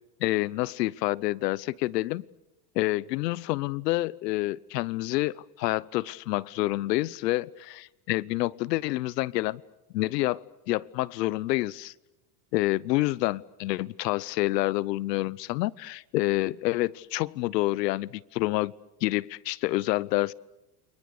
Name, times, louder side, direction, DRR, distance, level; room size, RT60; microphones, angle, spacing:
voice 1, 0.2-2.2 2.7-9.6 9.9-11.9 12.5-18.7 19.0-20.3, left 18 dB, 85° left, 22 dB, 0.9 m, -28 dB
29.5 x 25.5 x 6.7 m, 0.96 s
supercardioid pair, 165°, 48 cm